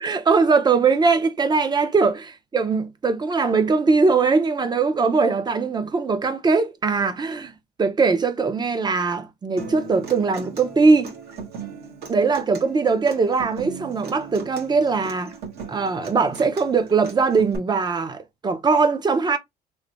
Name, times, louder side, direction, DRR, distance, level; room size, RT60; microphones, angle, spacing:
voice 1, 0.0-7.5 7.8-11.1 12.1-15.4 15.7-19.4, right 4 dB, 25° right, 0.6 m, -21 dB
Human voice / Acoustic guitar, 9.6-17.6, right 5 dB, 70° right, 1.3 m, -38 dB
3.2 x 2.1 x 4.0 m
cardioid pair, 110°, 17 cm